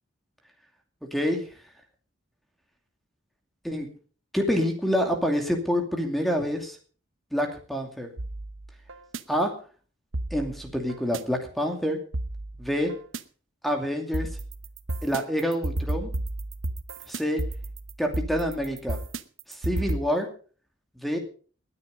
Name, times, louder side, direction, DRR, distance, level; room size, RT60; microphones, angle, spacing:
voice 1, 1.1-1.5 3.6-3.9 4.3-6.8 7.3-8.1 9.3-9.6 10.3-12.0 12.6-12.9 13.6-14.3 15.0-16.1 17.1-17.4 18.0-19.0 19.5-20.3 21.0-21.2, equal, ahead, 3 dB, 2.5 m, -27 dB
sound 1, 8.2-9.2 10.1-11.2 12.1-13.2 14.1-20.0, right 2 dB, 80° right, 1.0 m, -32 dB
19.5 x 9.8 x 5.3 m, 0.40 s
head